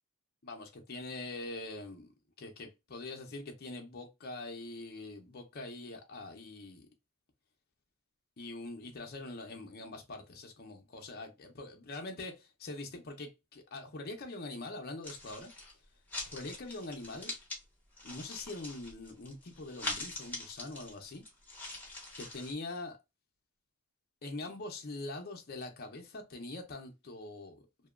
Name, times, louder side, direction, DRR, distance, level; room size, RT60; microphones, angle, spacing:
voice 1, 0.4-2.1 2.4-6.9 8.4-15.5 16.3-17.3 18.0-21.2 22.2-23.0 24.2-27.6, left 2 dB, 45° left, 0.6 m, -43 dB
sound 1, 15.0-15.7 16.1-17.6 18.0-22.5, left 2 dB, 10° left, 0.8 m, -43 dB
2.7 x 2.2 x 2.3 m
head